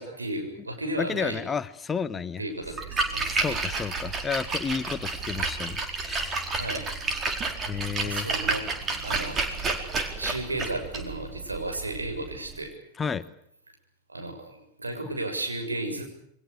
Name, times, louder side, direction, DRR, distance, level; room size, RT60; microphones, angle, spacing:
voice 1, 0.0-1.4 2.4-3.6 6.6-6.9 8.0-8.7 9.0-9.4 10.2-12.7 14.1-16.1, right 2 dB, 80° right, 4 dB, 6.9 m, -33 dB
voice 2, 1.0-2.4 3.3-6.5 7.7-8.3 13.0-13.3, left 6 dB, 15° left, 14 dB, 1.2 m, -32 dB
Splash splatter, 2.7-12.6, right 3 dB, 25° right, 4.3 m, -31 dB
29.0 x 23.0 x 6.6 m, 0.71 s
figure-of-eight pair, 90°, 0 cm